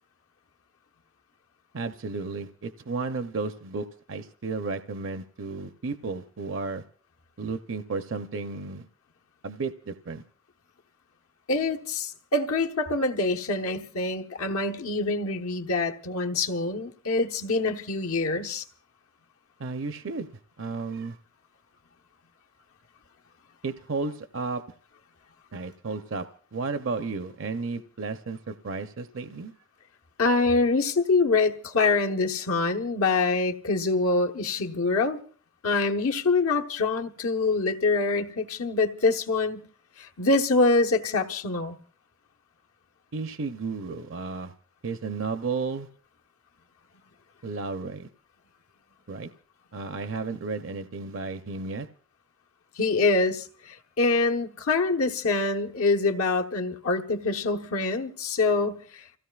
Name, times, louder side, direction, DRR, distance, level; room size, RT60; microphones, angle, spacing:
voice 1, 1.7-6.8 7.4-8.9 9.4-10.2 19.6-20.3 20.6-21.2 23.6-24.6 25.5-26.3 26.5-29.5 43.1-44.5 44.8-45.9 47.4-48.1 49.1-49.3 49.7-51.9, right 4 dB, 60° right, 0.6 m, -33 dB
voice 2, 11.5-18.6 30.2-35.2 35.6-39.7 40.0-41.8 52.8-59.1, left 3 dB, 75° left, 1.1 m, -25 dB
30.0 x 16.5 x 2.3 m
head